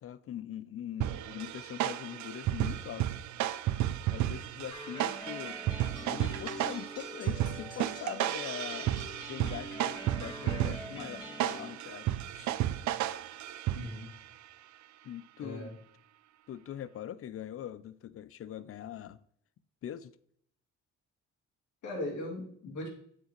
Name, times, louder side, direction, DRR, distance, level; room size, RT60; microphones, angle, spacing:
voice 1, 0.0-3.1 4.1-5.6 6.1-8.9 9.3-12.5 15.0-15.8 16.5-19.2 19.8-20.1, left 10 dB, 50° left, 0.4 m, -42 dB
sound 1, 1.0-14.2, right 13 dB, 70° right, 0.5 m, -33 dB
sound 2, 4.7-11.7, left 1 dB, 15° left, 2.5 m, -45 dB
voice 2, 13.7-14.1 15.4-15.7 21.8-22.9, left 1 dB, 75° left, 2.5 m, -38 dB
9.8 x 4.8 x 3.0 m
cardioid pair, 90°, 30 cm